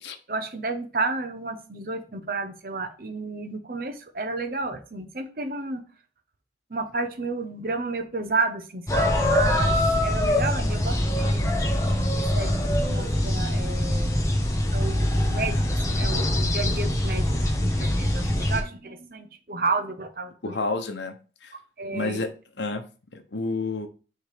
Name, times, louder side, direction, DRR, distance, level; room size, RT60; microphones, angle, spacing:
voice 1, 0.3-5.8 6.7-11.5 12.1-14.3 14.7-20.6 21.8-22.2, right 3 dB, 55° right, 7 dB, 0.8 m, -31 dB
sound 1, 8.9-18.6, left 1 dB, 15° left, 0.9 m, -23 dB
voice 2, 20.4-21.1 21.4-21.5 21.9-22.3 22.6-22.8 23.1-23.9, left 3 dB, 80° left, 6 dB, 0.9 m, -29 dB
6.6 x 3.3 x 5.0 m, 0.36 s
head